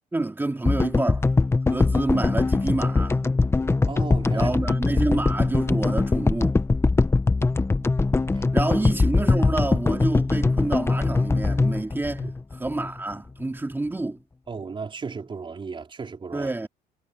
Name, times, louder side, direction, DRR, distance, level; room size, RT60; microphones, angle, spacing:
voice 1, 0.1-1.3 1.7-3.2 4.3-6.6 8.5-12.3 12.5-14.2 16.3-16.7, right 2 dB, 10° right, 2.9 m, -28 dB
sound 1, 0.6-13.0, left 3 dB, 15° left, 1.0 m, -22 dB
voice 2, 3.8-4.5 4.9-5.1 8.3-8.7 12.2-12.3 14.5-16.5, right 5 dB, 30° right, 4.4 m, -35 dB
cardioid pair, 110°, 17 cm